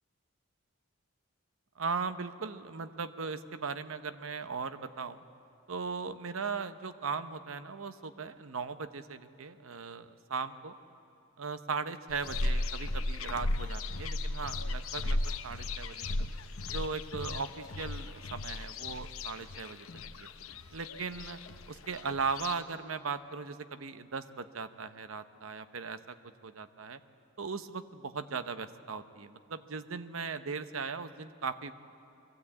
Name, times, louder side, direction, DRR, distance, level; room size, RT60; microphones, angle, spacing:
voice 1, 1.8-5.2 5.7-10.7 11.4-16.2 16.7-19.9 20.2-20.3 20.7-21.4 21.7-26.2 26.4-27.0 27.4-31.7, right 5 dB, 75° right, 11 dB, 0.8 m, -38 dB
sound 1, 12.1-22.5, left 2 dB, 85° left, 0.9 m, -36 dB
22.5 x 15.5 x 8.5 m, 2.6 s
head